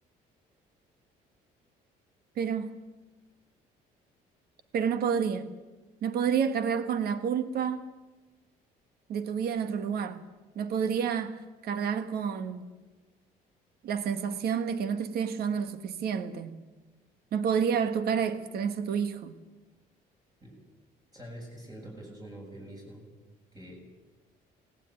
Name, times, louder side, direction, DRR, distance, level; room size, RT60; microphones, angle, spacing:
voice 1, 2.4-2.7 4.7-5.5 6.0-7.9 9.1-10.2 10.5-12.7 13.8-16.6 17.3-19.3, right 7 dB, 65° right, 1.6 m, -29 dB
voice 2, 21.1-23.0 23.5-23.8, right 1 dB, 20° right, 6.8 m, -45 dB
19.0 x 18.0 x 9.1 m
cardioid pair, 110°, 17 cm